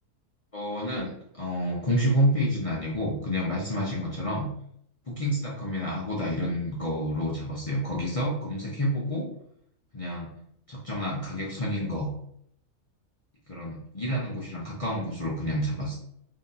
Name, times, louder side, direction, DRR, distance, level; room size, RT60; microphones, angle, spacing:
voice 1, 0.5-4.5 5.1-9.3 9.9-10.3 10.7-12.1 13.5-15.9, equal, 50° left, -5 dB, 0.4 m, -29 dB
2.8 x 2.7 x 3.8 m, 0.70 s
omnidirectional pair, 1.6 m